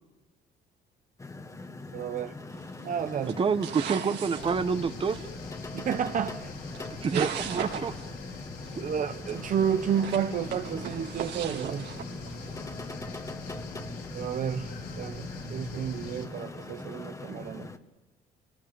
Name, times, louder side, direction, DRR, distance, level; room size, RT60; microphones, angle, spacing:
sound 1, 1.2-17.8, left 3 dB, 20° left, 1.9 m, -42 dB
voice 1, 1.9-2.4 2.8-3.4 5.7-6.5 7.1-7.3 8.8-11.9 14.1-14.7 15.0-17.7, right 8 dB, 50° right, 1.1 m, -31 dB
sound 2, 2.6-2.8 3.2-5.3 6.3-6.4 6.7-8.1 8.3-8.4 8.7-8.8 9.3-9.4 9.8-12.6, right 8 dB, 85° right, 4.5 m, -37 dB
voice 2, 3.3-5.2 7.0-7.9, right 5 dB, 30° right, 1.3 m, -28 dB
sound 3, 4.3-16.3, left 3 dB, 70° left, 5.0 m, -43 dB
28.0 x 19.5 x 8.9 m
cardioid pair, 110°, 17 cm